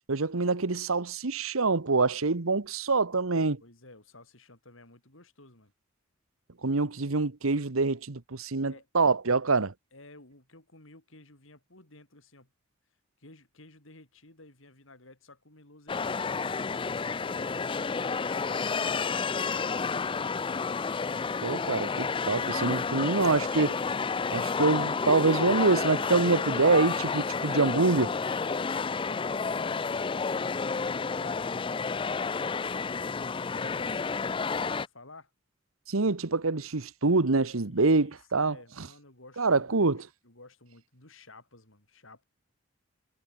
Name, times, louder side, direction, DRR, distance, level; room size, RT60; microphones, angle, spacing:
voice 1, 0.1-3.6 6.6-9.7 21.4-23.8 24.3-28.1 35.9-38.6 39.4-40.0, right 3 dB, 90° right, 1.2 m, -25 dB
voice 2, 3.6-5.7 8.6-8.9 9.9-12.5 13.2-16.5 29.1-35.3 37.7-42.2, left 2 dB, 70° left, 5.9 m, -53 dB
sound 1, 15.9-34.9, left 5 dB, 25° left, 0.4 m, -30 dB
head